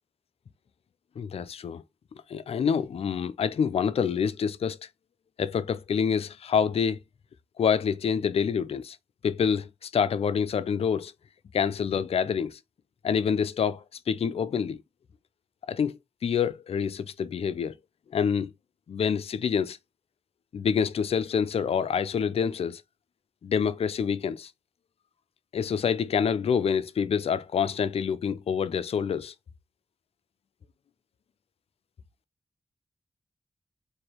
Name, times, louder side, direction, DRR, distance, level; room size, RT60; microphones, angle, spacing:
voice 1, 1.2-1.8 2.3-4.9 5.4-7.0 7.6-9.0 9.2-11.1 11.5-12.6 13.0-14.8 15.7-15.9 16.2-17.7 18.1-18.5 18.9-19.8 20.5-22.8 23.4-24.5 25.5-29.3, left 7 dB, 65° left, 0.4 m, -27 dB
3.2 x 2.6 x 4.3 m
cardioid pair, 40°, 11 cm